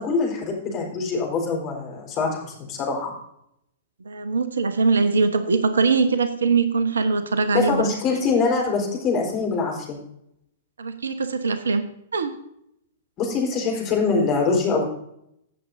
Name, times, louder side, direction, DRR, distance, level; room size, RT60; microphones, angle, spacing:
voice 1, 0.0-3.1 7.5-10.0 13.2-14.8, left 4 dB, 35° left, 0 dB, 4.2 m, -24 dB
voice 2, 4.0-7.9 10.8-11.8 12.1-12.3, right 4 dB, 70° right, 10 dB, 1.1 m, -22 dB
16.0 x 7.7 x 2.7 m, 0.74 s
figure-of-eight pair, 105°, 0 cm